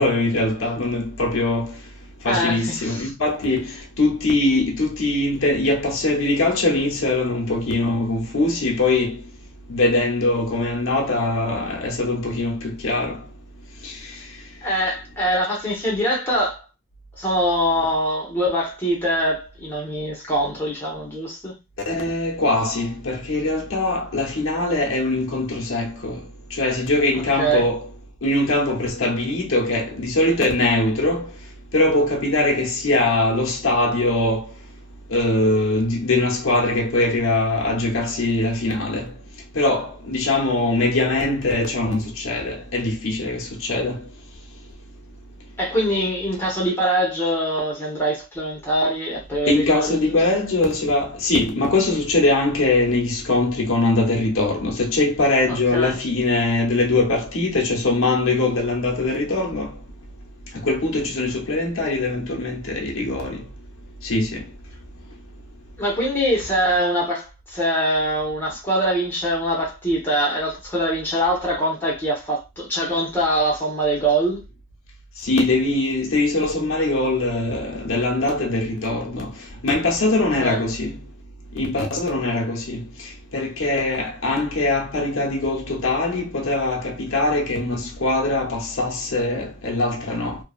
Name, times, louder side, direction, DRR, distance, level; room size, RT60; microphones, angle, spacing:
voice 1, 0.0-1.7 2.2-3.7 4.0-9.1 9.7-13.2 13.8-13.9 21.9-26.2 26.5-27.9 28.2-31.3 31.7-34.5 35.1-39.1 39.6-44.0 49.5-59.7 60.6-63.4 64.0-64.4 75.2-79.3 79.6-80.9 81.5-82.8 83.3-90.4, left 2 dB, 80° left, 0.8 m, -22 dB
voice 2, 2.2-3.1 14.6-16.6 17.2-21.5 27.1-27.7 45.6-50.2 55.5-56.0 65.8-74.4 80.4-80.6, right 1 dB, 10° left, 0.9 m, -23 dB
2.7 x 2.3 x 2.4 m
head